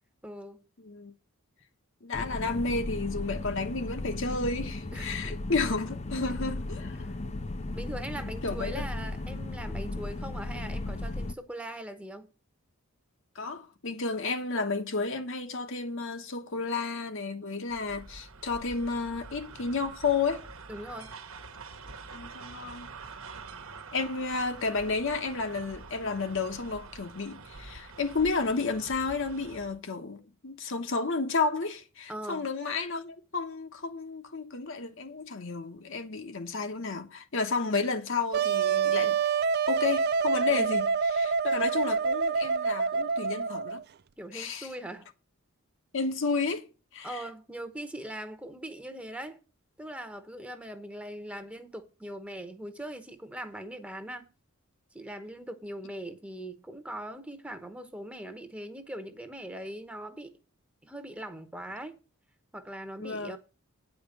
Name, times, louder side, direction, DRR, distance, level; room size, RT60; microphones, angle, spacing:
voice 1, 0.2-0.6 4.9-5.4 7.0-7.2 7.7-12.3 20.7-21.1 32.1-32.5 40.5-40.8 44.2-45.1 47.0-49.4 49.8-54.3 54.9-60.4 60.8-62.0 62.5-63.4, right 1 dB, 5° right, 1.0 m, -41 dB
voice 2, 2.0-7.0 8.4-8.8 13.3-20.4 22.1-22.9 23.9-39.2 39.7-40.9 41.1-43.8 44.3-44.7 45.9-46.7 46.9-47.2 63.0-63.4, left 4 dB, 60° left, 1.2 m, -32 dB
sound 1, 2.1-11.3, left 2 dB, 30° left, 0.5 m, -36 dB
sound 2, 17.7-29.8, right 4 dB, 65° right, 1.3 m, -46 dB
Wind instrument woodwind instrument, 38.3-43.8, right 5 dB, 45° right, 0.4 m, -27 dB
9.3 x 5.1 x 7.3 m
head